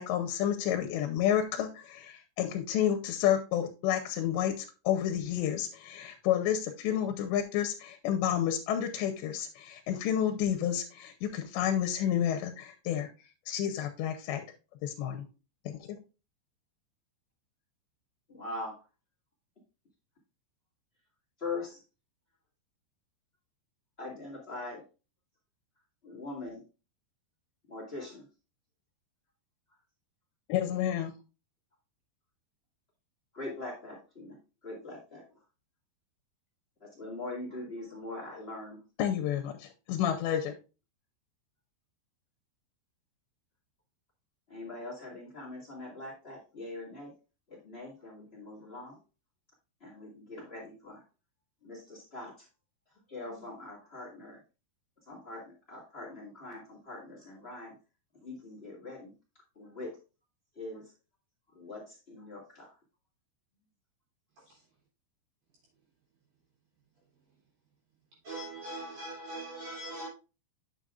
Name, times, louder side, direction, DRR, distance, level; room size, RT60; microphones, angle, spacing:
voice 1, 0.0-13.1 13.5-14.4 14.8-15.3 15.7-16.0 30.5-31.1 39.0-40.5, left 10 dB, 80° left, 5 dB, 2.9 m, -30 dB
voice 2, 18.3-18.7 21.4-21.8 24.0-24.8 26.0-26.6 27.7-28.2 33.3-34.4 34.6-35.2 36.8-38.8 44.5-47.1 47.6-49.0 49.8-51.0 51.6-52.3 53.1-54.4 55.1-57.7 58.2-59.1 59.5-60.0 60.6-60.8 61.5-62.7, left 2 dB, 40° left, -2 dB, 0.8 m, -42 dB
voice 3, 68.2-70.1, right 2 dB, 50° right, -6 dB, 4.4 m, -40 dB
9.0 x 6.8 x 2.5 m, 0.31 s
omnidirectional pair, 5.2 m